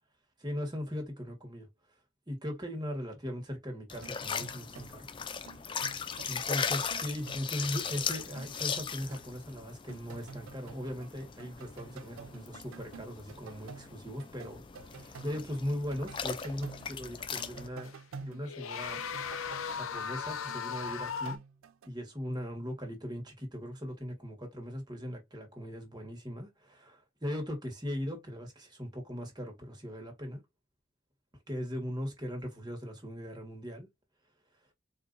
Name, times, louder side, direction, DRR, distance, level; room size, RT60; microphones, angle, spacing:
voice 1, 0.4-1.7 2.3-5.4 6.3-14.6 14.9-17.9 18.2-19.0 19.7-21.4 21.8-30.4 31.5-33.9, equal, 20° right, 1.4 m, -39 dB
sound 1, 3.9-17.7, left 6 dB, 25° left, 0.3 m, -39 dB
sound 2, 4.0-5.0 5.3-7.8 8.2-9.3 9.7-11.1 11.4-21.9, right 5 dB, 90° right, 0.4 m, -50 dB
sound 3, 16.4-16.5 17.8-18.0 18.4-21.4, left 6 dB, 85° left, 0.6 m, -37 dB
4.2 x 2.5 x 2.5 m
head